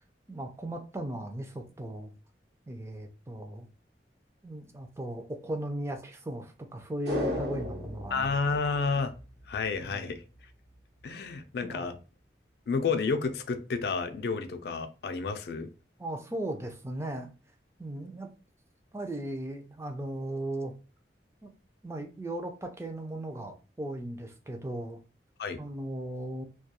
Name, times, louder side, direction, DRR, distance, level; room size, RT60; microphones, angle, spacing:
voice 1, 0.3-2.1 2.7-3.7 4.4-8.4 9.8-10.1 11.6-11.9 16.0-17.3 17.8-18.3 18.9-20.7 21.4-21.5 21.8-25.0 25.6-26.4, right 1 dB, 15° right, 0.3 m, -37 dB
sound 1, 7.0-9.5 9.8-9.9, left 1 dB, 75° right, 0.9 m, -35 dB
voice 2, 8.1-9.1 9.5-10.2 11.0-12.0 12.7-15.7 25.4-25.6, left 4 dB, 60° left, 0.3 m, -30 dB
2.2 x 2.2 x 2.8 m
head